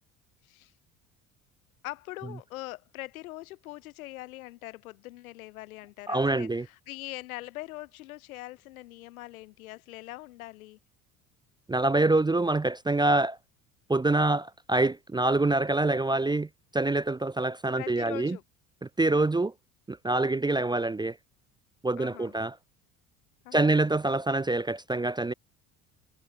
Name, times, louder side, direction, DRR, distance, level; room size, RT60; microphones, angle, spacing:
voice 1, 1.8-10.8 17.8-18.4 22.0-22.3 23.4-23.8, left 18 dB, 90° left, 2.8 m, -42 dB
voice 2, 6.1-6.7 11.7-13.4 13.9-18.4 18.8-19.5 19.9-21.2 21.8-22.5 23.5-25.3, right 2 dB, 10° right, 0.5 m, -26 dB
hypercardioid pair, 75°, 41 cm